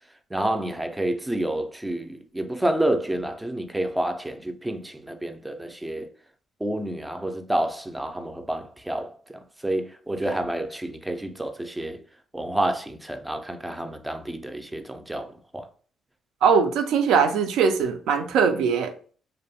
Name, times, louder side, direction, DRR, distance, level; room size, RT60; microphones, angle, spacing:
voice 1, 0.3-6.1 6.6-12.0 12.3-15.7, right 1 dB, 10° right, 0.3 m, -29 dB
voice 2, 16.4-18.9, right 6 dB, 85° right, 0.4 m, -21 dB
2.6 x 2.1 x 2.7 m
cardioid pair, 90°, 0 cm